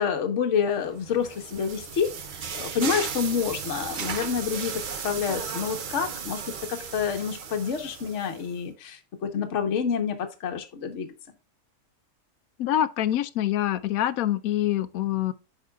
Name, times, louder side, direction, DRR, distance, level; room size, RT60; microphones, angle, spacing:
voice 1, 0.0-2.1 2.5-11.1, left 7 dB, 55° left, 1.2 m, -28 dB
sound 1, 0.9-8.5, right 6 dB, 50° right, 0.6 m, -35 dB
voice 2, 12.6-15.3, left 12 dB, 75° left, 1.0 m, -25 dB
8.6 x 5.5 x 2.3 m
omnidirectional pair, 1.6 m